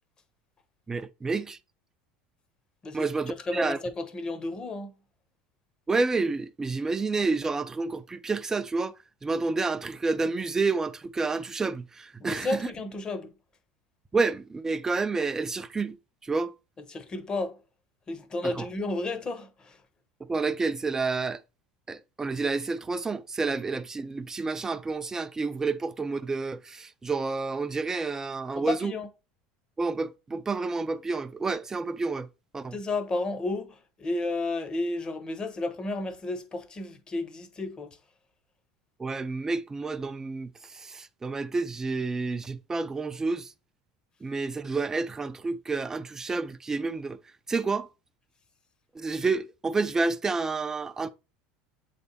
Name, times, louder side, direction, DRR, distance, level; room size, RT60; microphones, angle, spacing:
voice 1, 0.9-1.6 2.9-3.8 5.9-9.0 9.2-12.6 14.1-16.0 16.2-16.5 18.4-18.7 20.3-21.4 21.9-28.9 29.8-32.3 32.5-32.8 39.0-43.5 44.2-47.2 47.5-47.9 48.9-51.1, right 3 dB, 15° right, 0.5 m, -29 dB
voice 2, 2.8-4.9 12.2-13.3 16.9-17.6 18.1-19.8 28.5-29.1 32.7-38.0, left 2 dB, 25° left, 1.0 m, -32 dB
8.0 x 3.4 x 4.1 m
supercardioid pair, 125°, 3 cm